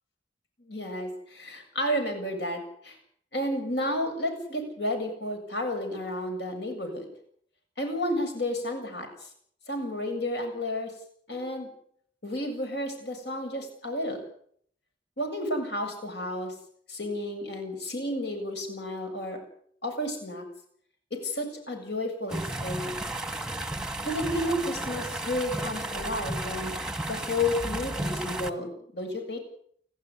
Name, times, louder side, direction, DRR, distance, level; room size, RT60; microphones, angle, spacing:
voice 1, 0.6-3.0 3.3-7.1 7.8-9.3 9.7-10.9 11.3-11.7 12.2-14.2 15.2-16.5 16.9-19.4 19.8-20.4 21.1-22.9 24.1-26.8 27.0-29.4, left 1 dB, 60° left, 5 dB, 7.6 m, -31 dB
sound 1, 22.3-28.5, right 1 dB, 5° right, 1.5 m, -33 dB
29.5 x 12.5 x 9.9 m, 0.65 s
head